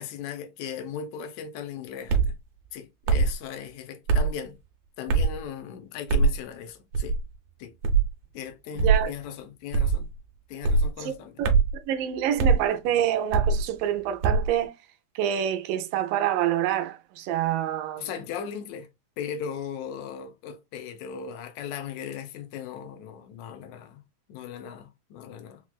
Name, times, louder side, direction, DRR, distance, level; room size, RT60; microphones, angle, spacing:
voice 1, 0.0-2.3 2.7-4.6 5.0-7.2 7.6-7.7 8.3-10.1 10.5-11.4 18.0-18.9 19.2-24.0 24.3-25.6, left 8 dB, 85° left, 1.6 m, -37 dB
sound 1, 2.1-2.3 3.1-3.3 4.1-4.3 5.1-5.4 6.1-6.3 6.9-7.2 7.8-8.1 8.8-9.0 9.7-10.0 10.6-10.9 11.4-11.7 12.4-12.6 13.3-13.6 14.2-14.5, right 4 dB, 75° right, 1.9 m, -21 dB
voice 2, 8.8-9.1 11.0-11.5 11.9-14.7 15.2-18.1, right 10 dB, 90° right, 2.2 m, -27 dB
5.9 x 2.0 x 2.3 m
omnidirectional pair, 3.8 m